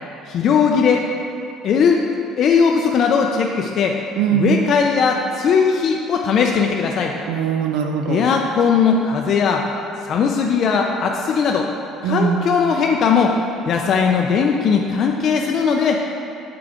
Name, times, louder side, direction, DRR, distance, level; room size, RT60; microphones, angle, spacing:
voice 1, 0.3-1.1 1.6-2.0 2.4-4.0 4.3-7.2 8.1-9.7 10.0-11.7 12.0-13.4 13.7-16.0, left 6 dB, 50° left, 1 dB, 0.4 m, -18 dB
voice 2, 4.2-4.6 7.3-8.3 12.0-12.5, right 7 dB, 80° right, 5 dB, 0.5 m, -21 dB
6.7 x 5.1 x 3.6 m, 2.7 s
cardioid pair, 125°, 0 cm